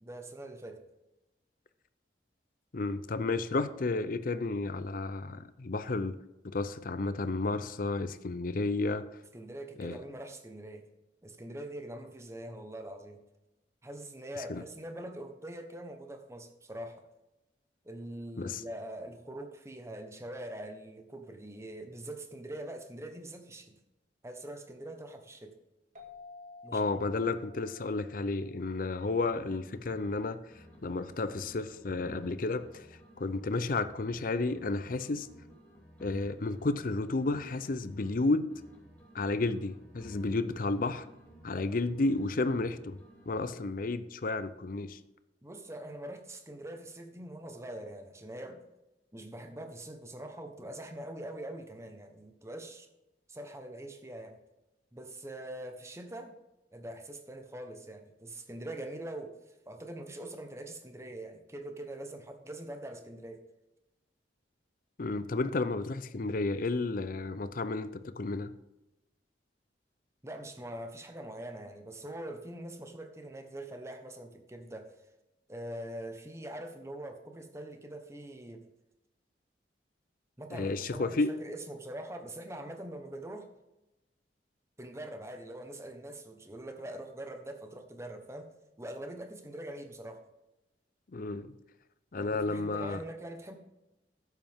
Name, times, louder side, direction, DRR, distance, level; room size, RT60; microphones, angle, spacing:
voice 1, 0.0-0.8 9.3-10.9 11.2-13.2 13.8-17.0 17.8-23.8 24.2-25.6 26.6-26.8 45.4-48.6 49.1-52.9 53.3-54.4 54.9-56.4 56.7-59.3 59.7-63.4 70.2-74.9 75.5-78.7 80.4-83.5 84.8-88.5 88.8-90.2 92.2-93.6, right 1 dB, 15° right, 5 dB, 1.1 m, -43 dB
voice 2, 2.7-6.2 6.4-9.0 9.8-10.0 14.5-14.6 18.4-18.6 26.7-30.4 30.8-32.9 33.2-35.3 36.0-38.5 39.1-41.0 41.4-43.0 43.3-45.0 65.0-68.5 80.5-81.3 91.1-91.5 92.1-93.0, left 3 dB, 50° left, 12 dB, 0.5 m, -32 dB
sound 1, 26.0-29.3, left 3 dB, 50° right, 1.8 m, -53 dB
sound 2, 28.7-30.3 30.5-34.3 34.5-38.3 38.5-42.3 42.5-43.9, equal, 10° left, 2.7 m, -55 dB
11.5 x 8.2 x 3.6 m, 0.96 s
head